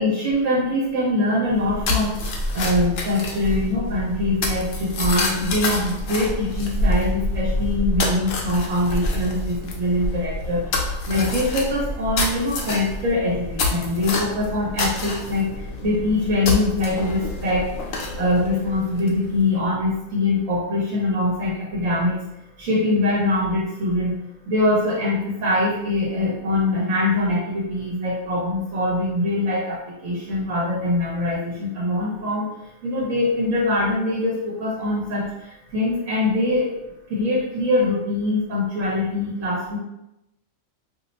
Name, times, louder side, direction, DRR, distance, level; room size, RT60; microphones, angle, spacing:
voice 1, 0.0-2.2 2.5-22.2 22.6-24.2 24.5-32.5 32.8-36.7 37.1-39.8, left 1 dB, 70° right, -6 dB, 1.3 m, -23 dB
sound 1, 1.5-19.4, left 2 dB, 60° left, 0.7 m, -27 dB
2.8 x 2.1 x 4.0 m, 0.87 s
omnidirectional pair, 1.4 m